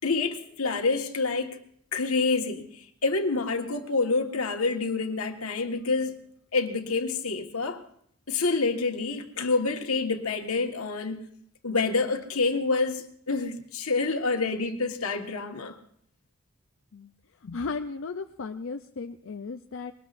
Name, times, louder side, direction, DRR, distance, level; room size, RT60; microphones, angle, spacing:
voice 1, 0.0-1.6 1.9-6.2 6.5-7.8 8.3-11.2 11.6-15.7, left 3 dB, 85° left, 1.5 m, -27 dB
voice 2, 17.4-19.9, left 4 dB, 60° left, 0.5 m, -35 dB
21.5 x 19.0 x 2.6 m
head